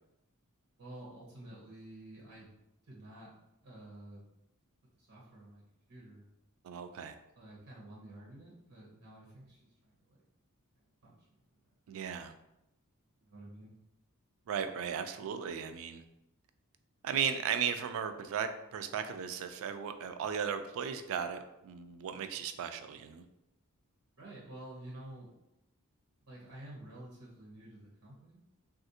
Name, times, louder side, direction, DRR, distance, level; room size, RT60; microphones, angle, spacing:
voice 1, 0.8-2.5 2.9-3.3 3.6-4.2 5.0-5.6 5.9-6.2 7.4-10.2 11.0-11.4 13.2-13.7 24.2-25.3 26.2-28.4, right 1 dB, 80° right, -5 dB, 0.8 m, -50 dB
voice 2, 6.6-7.2 11.9-12.3 14.5-16.0 17.0-23.2, right 7 dB, 65° right, 9 dB, 0.3 m, -36 dB
3.4 x 2.4 x 2.7 m, 0.88 s
head